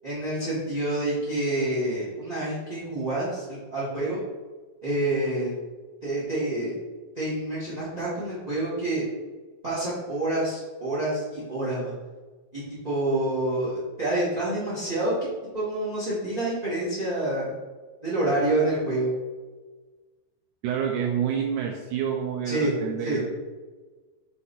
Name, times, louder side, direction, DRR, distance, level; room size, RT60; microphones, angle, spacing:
voice 1, 0.0-4.2 4.8-5.5 6.0-6.8 7.1-9.0 9.6-11.9 12.5-15.3 15.5-17.5 18.0-19.1 22.4-22.7 23.0-23.2, right 1 dB, 20° right, -9 dB, 1.0 m, -27 dB
voice 2, 20.6-23.3, right 8 dB, 85° right, 1 dB, 1.7 m, -28 dB
5.9 x 4.1 x 4.2 m, 1.3 s
omnidirectional pair, 4.2 m